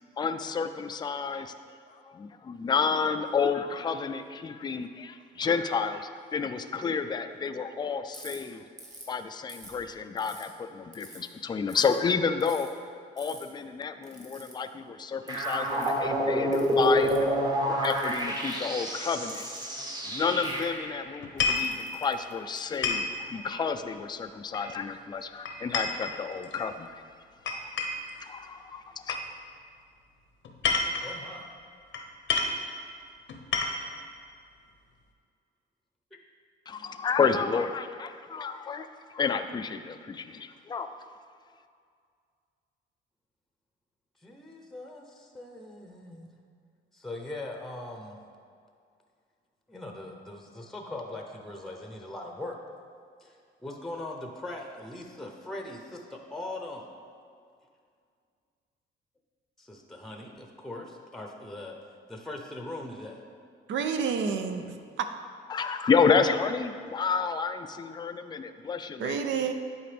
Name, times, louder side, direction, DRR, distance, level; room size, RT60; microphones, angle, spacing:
voice 1, 0.2-1.5 2.1-8.6 9.1-12.7 13.2-17.3 17.7-19.5 20.1-26.9 27.5-27.6 28.2-29.2 36.7-38.9 39.1-40.9 65.5-69.3, left 5 dB, 20° left, 9 dB, 0.3 m, -30 dB
Ratchet pawl, 8.1-8.4 8.8-9.1 9.5-10.4 10.9-11.3 11.7-12.0 12.4-12.7 13.2-13.4 14.0-14.5 15.3-15.9 16.5-17.3 17.8-18.5 19.3-19.6 20.4-20.6 21.4-22.8, right 2 dB, 35° right, 1.6 m, -48 dB
sound 1, 15.3-21.0, equal, 20° right, 1.0 m, -28 dB
sound 2, 21.2-21.7 22.8-23.1 24.5-24.9 25.4-26.6 27.4-28.1 29.1-29.3 30.4-31.1 31.9-32.0 32.3-32.6 33.3-33.9, left 4 dB, 70° left, 0.8 m, -29 dB
voice 2, 31.0-31.5 44.2-46.3 46.9-48.2 49.7-52.6 53.2-56.9 59.6-61.7 62.1-63.2, left 2 dB, ahead, 1 dB, 0.8 m, -40 dB
voice 3, 63.7-65.1 69.0-69.5, right 6 dB, 70° right, 7 dB, 0.6 m, -29 dB
10.5 x 4.2 x 3.4 m, 2.2 s
cardioid pair, 90°, 20 cm